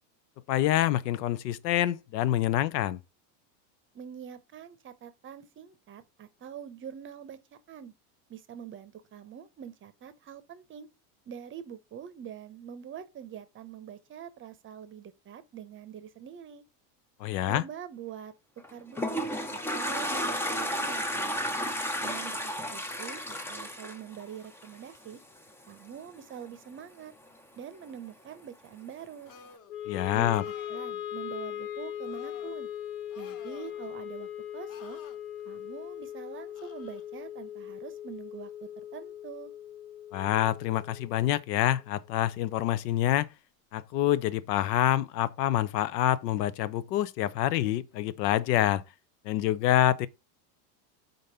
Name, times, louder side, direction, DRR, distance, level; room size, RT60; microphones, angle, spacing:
voice 1, 0.5-3.0 17.2-17.6 29.9-30.4 40.1-43.3 43.7-48.8 49.2-50.1, left 13 dB, 80° left, 0.7 m, -26 dB
voice 2, 3.9-7.4 7.7-7.9 8.3-10.9 11.3-16.6 17.5-18.3 18.7-21.5 22.0-25.2 25.7-27.1 27.6-29.3 30.1-32.7 33.2-34.3 34.5-35.0 35.5-39.5, right 9 dB, 25° right, 0.7 m, -44 dB
Toilet flush, 18.6-25.0, equal, 5° left, 0.4 m, -32 dB
sound 1, 29.3-29.7 30.2-30.9 32.0-32.6 33.1-34.0 34.7-35.2 36.5-37.0, left 7 dB, 40° left, 1.4 m, -52 dB
Wind instrument woodwind instrument, 29.7-41.9, left 10 dB, 60° left, 1.2 m, -40 dB
5.1 x 4.0 x 5.5 m
supercardioid pair, 130°, 48 cm